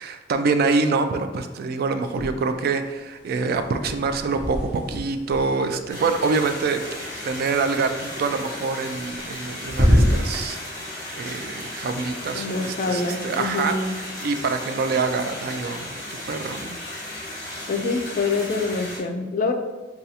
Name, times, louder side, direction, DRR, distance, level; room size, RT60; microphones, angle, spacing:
voice 1, 0.0-6.9 7.2-10.6 11.1-13.9 14.2-16.0 16.3-16.8, right 4 dB, 55° right, 8 dB, 0.3 m, -25 dB
sound 1, 2.1-2.8 3.0-7.1 8.8-9.4 9.7-10.5, equal, 10° right, 0.8 m, -25 dB
sound 2, 5.9-19.0, left 1 dB, 20° left, 1.3 m, -35 dB
voice 2, 12.3-13.9 17.7-19.5, left 3 dB, 45° left, 5 dB, 0.4 m, -25 dB
5.3 x 2.3 x 2.7 m, 1.3 s
head